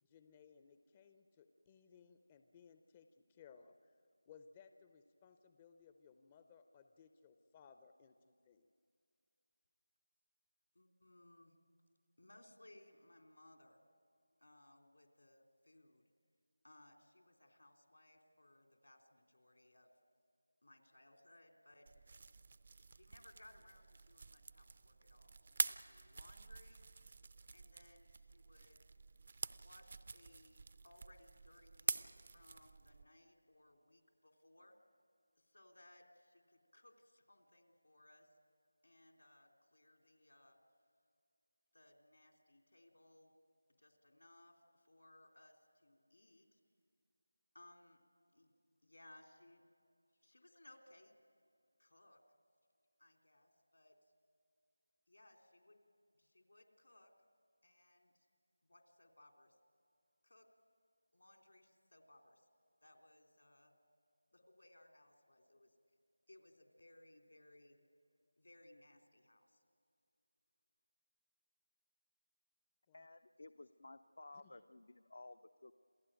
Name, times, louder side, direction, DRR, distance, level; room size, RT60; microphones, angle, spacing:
voice 1, 0.0-3.9 4.3-8.7 72.9-73.1 74.4-74.6, left 6 dB, 15° left, 8 dB, 0.6 m, -63 dB
voice 2, 10.7-11.5 12.2-13.8 14.4-16.1 16.6-19.9 20.6-21.9 22.8-26.8 27.5-28.8 29.5-34.8 35.4-38.3 38.8-40.6 41.7-43.3 43.8-46.6 47.5-48.0 48.3-48.5 48.8-49.6 50.2-51.2 51.8-52.2 53.0-54.0 55.1-55.8 56.1-57.1 57.6-58.3 58.6-59.6 60.2-60.5 61.1-62.4 62.8-63.7 64.3-65.7 66.3-67.8 68.4-69.6, left 1 dB, 80° left, 3 dB, 3.4 m, -65 dB
sound 1, 21.9-33.0, right 4 dB, 40° right, 0.6 m, -47 dB
voice 3, 72.9-75.7, left 2 dB, 60° left, 11 dB, 0.6 m, -56 dB
27.5 x 15.5 x 9.0 m, 2.3 s
figure-of-eight pair, 170°, 0 cm